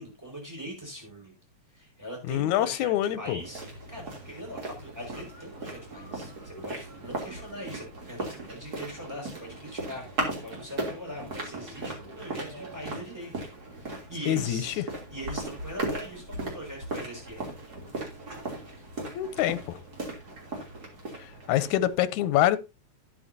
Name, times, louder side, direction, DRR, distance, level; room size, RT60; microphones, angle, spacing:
voice 1, 0.0-1.3 1.7-13.5 13.7-14.8 15.1-17.5 21.6-21.8, equal, 5° right, 5.5 m, -41 dB
voice 2, 2.3-3.4 14.3-14.8 19.1-19.8 21.2-22.6, left 13 dB, 90° left, 2.2 m, -26 dB
sound 1, 3.4-21.9, right 2 dB, 30° right, 3.4 m, -38 dB
12.5 x 9.8 x 2.7 m
omnidirectional pair, 3.3 m